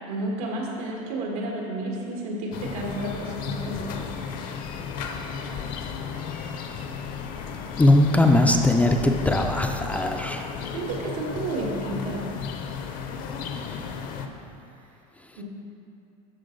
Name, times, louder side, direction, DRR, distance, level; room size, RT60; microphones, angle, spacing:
voice 1, 0.1-4.1 10.7-12.3 15.4-15.5, right 2 dB, 90° right, -2 dB, 1.8 m, -31 dB
sound 1, 2.5-14.3, left 6 dB, 50° left, 0.7 m, -34 dB
voice 2, 7.8-10.4, left 1 dB, 10° left, 3 dB, 0.4 m, -20 dB
13.0 x 4.6 x 3.9 m, 2.7 s
supercardioid pair, 135°, 18 cm